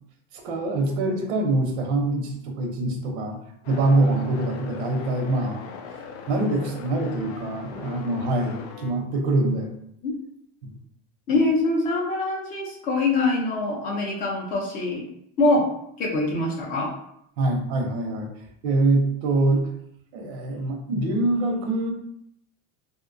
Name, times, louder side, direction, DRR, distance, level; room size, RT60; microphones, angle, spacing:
voice 1, 0.3-3.4 3.7-5.6 6.3-9.8 10.6-10.7 17.4-18.3 18.6-19.7 20.1-21.9, right 2 dB, 90° right, 3 dB, 0.7 m, -24 dB
sound 1, 3.6-8.9, left 6 dB, 90° left, 0.5 m, -40 dB
voice 2, 11.3-15.0 15.4-15.6 16.0-16.9, left 2 dB, 25° left, -1 dB, 0.4 m, -24 dB
2.6 x 2.1 x 2.5 m, 0.73 s
cardioid pair, 170°, 32 cm